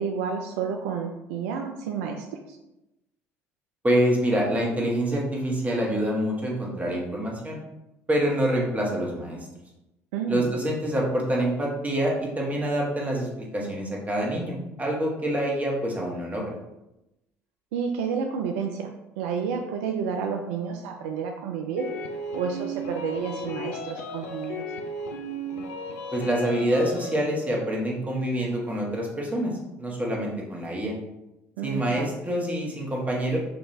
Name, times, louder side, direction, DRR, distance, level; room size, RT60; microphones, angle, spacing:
voice 1, 0.0-2.6 10.1-10.5 17.7-18.9 19.2-21.9 22.3-24.7 31.6-32.1, right 6 dB, 75° right, 3 dB, 0.4 m, -30 dB
voice 2, 3.8-7.6 8.1-9.5 10.3-16.5 26.1-30.9 31.6-33.4, right 1 dB, 20° right, -2 dB, 1.3 m, -26 dB
sound 1, 21.8-27.2, left 1 dB, 80° left, 0.4 m, -35 dB
4.2 x 2.9 x 3.2 m, 0.93 s
hypercardioid pair, 55°, 7 cm